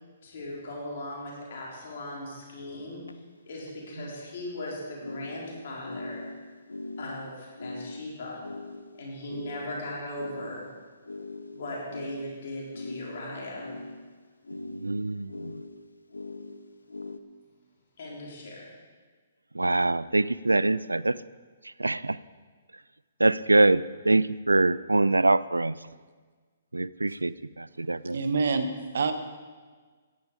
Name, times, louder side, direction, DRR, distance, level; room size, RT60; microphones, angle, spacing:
voice 1, 0.2-3.0 3.5-6.2 7.0-8.4 8.9-10.7 11.5-13.7 18.0-18.7, left 1 dB, 55° left, -3 dB, 4.0 m, -38 dB
sound 1, 2.1-2.2 3.0-3.1 5.0-17.2, left 2 dB, 85° left, 0.6 m, -41 dB
voice 2, 14.7-15.5 19.5-21.2 21.8-22.2 23.2-25.8 26.7-28.2, right 2 dB, 90° right, 18 dB, 0.4 m, -24 dB
voice 3, 28.1-29.1, right 4 dB, 65° right, 9 dB, 1.2 m, -26 dB
14.5 x 10.5 x 4.9 m, 1.5 s
figure-of-eight pair, 130°, 0 cm